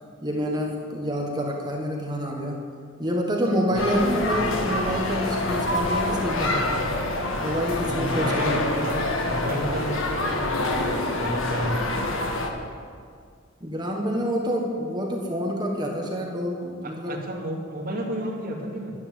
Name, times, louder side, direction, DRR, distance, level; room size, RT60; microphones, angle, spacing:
voice 1, 0.2-2.6 3.0-6.8 7.4-8.7 13.6-17.2, equal, 20° right, 0 dB, 1.5 m, -27 dB
sound 1, 3.7-12.5, left 2 dB, 75° left, 1.7 m, -26 dB
voice 2, 7.8-11.9 16.8-18.9, equal, 45° right, -2 dB, 2.7 m, -32 dB
12.0 x 11.0 x 7.9 m, 2.1 s
head